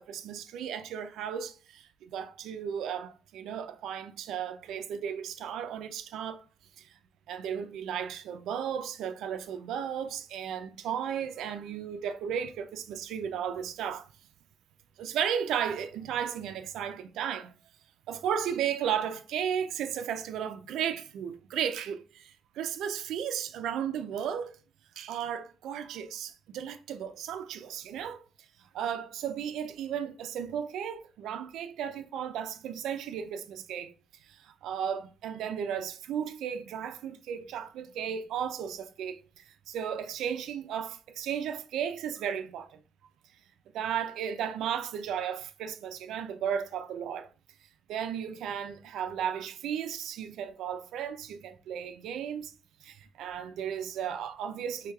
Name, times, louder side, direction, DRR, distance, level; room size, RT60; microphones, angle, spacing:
voice 1, 0.0-6.4 6.8-6.9 7.3-14.1 15.0-17.5 18.1-24.6 25.0-28.2 28.7-33.9 34.2-42.8 43.7-47.3 47.9-52.5 52.8-54.9, right 8 dB, 90° right, 0.4 m, -34 dB
4.7 x 3.2 x 2.3 m
cardioid pair, 95°, 0 cm